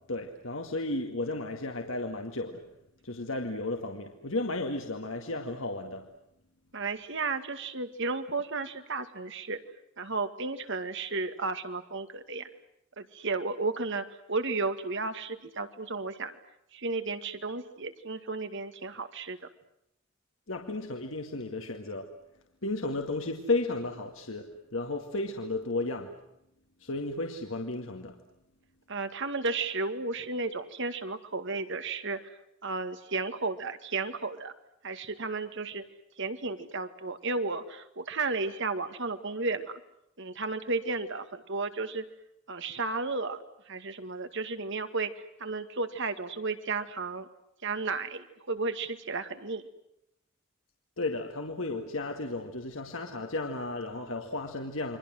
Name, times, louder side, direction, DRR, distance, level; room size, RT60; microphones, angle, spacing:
voice 1, 0.1-2.7 3.0-6.1 20.5-22.1 22.6-26.1 26.8-28.2 51.0-55.0, left 2 dB, 70° left, 3 dB, 2.1 m, -33 dB
voice 2, 6.7-9.6 10.0-12.5 13.0-16.3 16.7-19.5 28.9-32.2 32.6-34.5 34.8-35.8 36.2-39.8 40.2-42.0 42.5-45.1 45.4-47.3 47.6-49.6, right 3 dB, 65° right, 9 dB, 2.1 m, -33 dB
29.5 x 24.0 x 7.7 m, 0.79 s
head